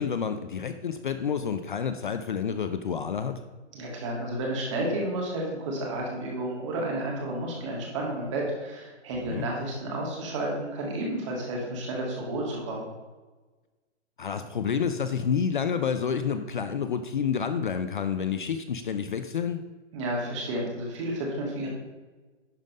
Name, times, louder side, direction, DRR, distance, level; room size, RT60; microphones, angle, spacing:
voice 1, 0.0-3.4 9.1-9.5 14.2-19.6, left 7 dB, 45° left, 9 dB, 0.5 m, -29 dB
voice 2, 3.7-12.9 19.9-21.7, right 1 dB, 25° right, -2 dB, 1.9 m, -31 dB
11.0 x 3.7 x 5.3 m, 1.3 s
hypercardioid pair, 180°, 34 cm